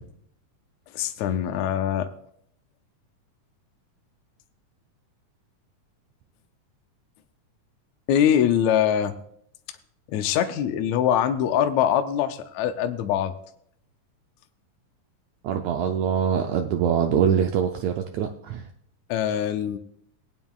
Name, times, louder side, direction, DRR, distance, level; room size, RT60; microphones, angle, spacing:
voice 1, 0.9-2.1 8.1-9.1 10.1-13.3 19.1-19.8, left 9 dB, 75° left, 8 dB, 1.8 m, -23 dB
voice 2, 15.4-18.6, right 8 dB, 75° right, 4 dB, 1.8 m, -24 dB
20.0 x 9.2 x 2.4 m, 0.69 s
omnidirectional pair, 3.7 m